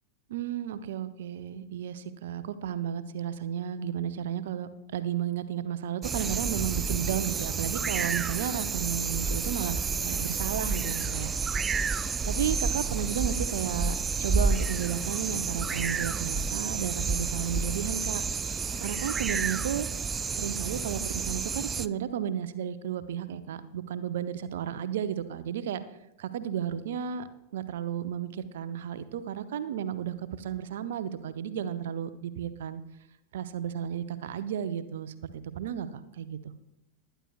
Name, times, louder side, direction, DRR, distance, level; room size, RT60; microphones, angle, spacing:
voice 1, 0.3-19.9 20.3-25.8 26.2-27.3 27.5-32.8 33.3-36.5, right 9 dB, 60° right, 12 dB, 0.8 m, -33 dB
sound 1, 6.0-21.9, right 5 dB, 20° right, 0.3 m, -30 dB
21.0 x 10.0 x 2.4 m, 0.85 s
figure-of-eight pair, 90°, 0 cm